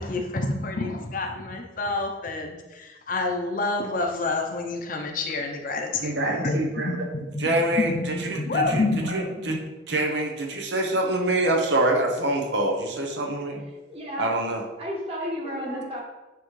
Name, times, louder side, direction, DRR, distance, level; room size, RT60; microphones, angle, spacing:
voice 1, 0.0-9.1, left 2 dB, 45° left, 3 dB, 0.7 m, -28 dB
voice 2, 6.0-6.9 7.4-9.6 9.9-13.6 14.2-14.6 15.7-15.9, right 1 dB, 65° right, 1 dB, 0.9 m, -25 dB
voice 3, 13.9-14.3 14.8-16.0, equal, 30° right, -3 dB, 1.6 m, -32 dB
8.8 x 3.6 x 3.2 m, 1.1 s
head